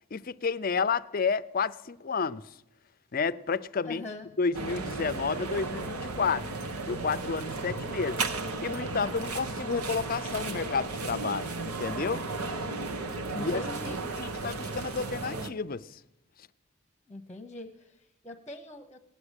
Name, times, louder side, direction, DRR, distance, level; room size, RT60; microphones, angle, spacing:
voice 1, 0.1-2.6 3.1-4.0 4.4-6.5 6.9-8.2 8.6-12.3 13.3-13.6 14.2-16.0, left 5 dB, 40° left, 0.5 m, -31 dB
voice 2, 3.8-4.3 13.3-14.0 17.1-19.1, left 1 dB, 10° left, 0.9 m, -42 dB
sound 1, 4.5-15.5, right 3 dB, 85° right, 1.1 m, -34 dB
18.0 x 9.7 x 8.2 m
head